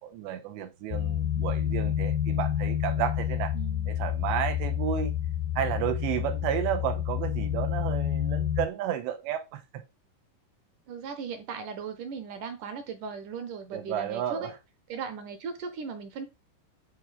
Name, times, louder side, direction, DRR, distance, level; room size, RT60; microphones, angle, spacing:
voice 1, 0.0-3.5 3.9-5.1 5.6-9.8 13.7-14.5, right 10 dB, 90° right, 3.5 m, -32 dB
sound 1, 0.9-8.7, left 10 dB, 80° left, 2.4 m, -29 dB
voice 2, 3.5-4.0 10.9-14.5 14.9-16.3, right 5 dB, 65° right, 2.3 m, -37 dB
10.0 x 4.6 x 5.1 m
omnidirectional pair, 4.9 m